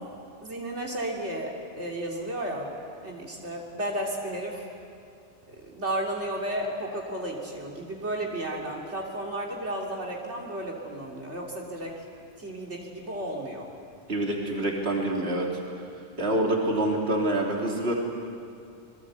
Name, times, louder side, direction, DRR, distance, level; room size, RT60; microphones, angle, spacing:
voice 1, 0.4-2.7 3.0-4.7 5.5-11.9 12.4-13.7, right 1 dB, 85° right, -2 dB, 3.3 m, -33 dB
voice 2, 14.1-15.5 16.2-17.9, right 1 dB, 65° right, -1 dB, 3.4 m, -26 dB
27.5 x 22.0 x 8.2 m, 2.4 s
omnidirectional pair, 1.1 m